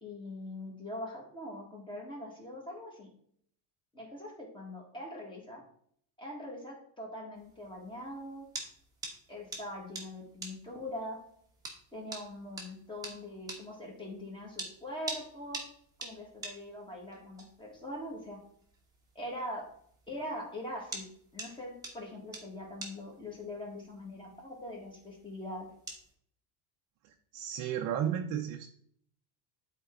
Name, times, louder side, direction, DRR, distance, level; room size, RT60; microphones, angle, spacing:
voice 1, 0.0-3.1 3.9-5.6 6.2-8.5 9.3-11.2 11.9-15.6 16.0-18.4 19.2-19.7 20.1-25.7, left 1 dB, 10° left, -1 dB, 1.8 m, -42 dB
sound 1, 7.4-26.1, right 2 dB, 5° right, 1.2 m, -47 dB
voice 2, 27.3-28.7, right 9 dB, 40° right, 3 dB, 0.7 m, -33 dB
11.0 x 4.5 x 3.8 m, 0.65 s
cardioid pair, 180°, 49 cm